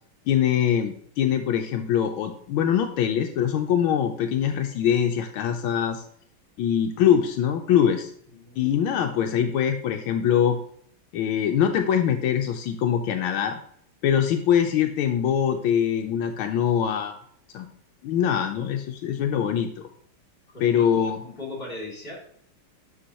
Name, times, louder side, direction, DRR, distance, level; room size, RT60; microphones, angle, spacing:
voice 1, 0.3-6.0 6.6-8.1 8.6-10.6 11.1-13.6 14.0-17.1 17.5-17.7 18.0-19.9 20.6-21.2, left 9 dB, 85° left, 5 dB, 1.4 m, -23 dB
voice 2, 8.3-8.8 9.2-9.4 20.5-22.2, left 2 dB, 30° left, -1 dB, 2.7 m, -39 dB
11.5 x 4.9 x 2.9 m, 0.63 s
omnidirectional pair, 2.3 m